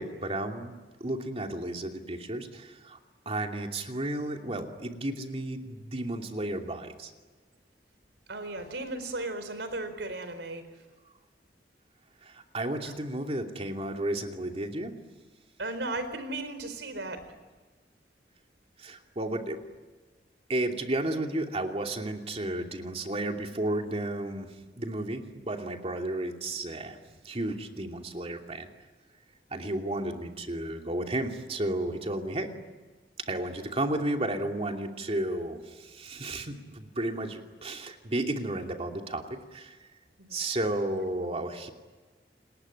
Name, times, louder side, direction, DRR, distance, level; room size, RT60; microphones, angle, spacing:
voice 1, 0.0-3.0 3.3-7.1 12.2-14.9 18.8-19.6 20.5-24.5 24.7-27.0 27.2-28.7 29.5-32.5 33.3-39.8 40.3-41.7, right 1 dB, 35° right, 3 dB, 2.8 m, -33 dB
voice 2, 8.3-10.7 15.6-17.2 40.2-40.4, right 2 dB, 85° right, 10 dB, 4.3 m, -35 dB
29.0 x 20.5 x 9.9 m, 1.3 s
head